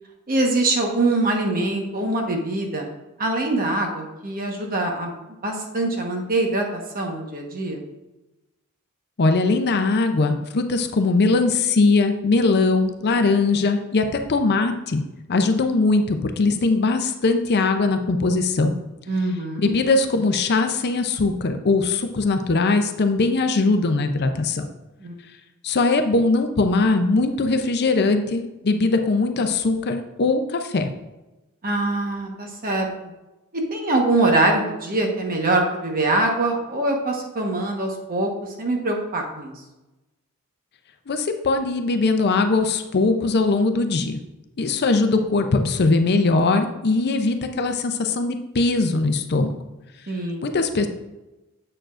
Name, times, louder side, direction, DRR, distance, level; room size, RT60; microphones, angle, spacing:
voice 1, 0.3-2.9 3.2-5.1 5.4-7.8 19.1-19.7 25.0-25.1 31.6-32.9 33.5-38.3 38.6-39.5 50.1-50.4, right 2 dB, 40° right, 1 dB, 1.2 m, -23 dB
voice 2, 9.2-15.0 15.3-18.7 19.6-24.7 25.6-30.9 41.1-44.2 44.6-49.5 50.4-50.9, left 3 dB, 50° left, 6 dB, 0.6 m, -20 dB
7.6 x 7.0 x 2.5 m, 1.0 s
head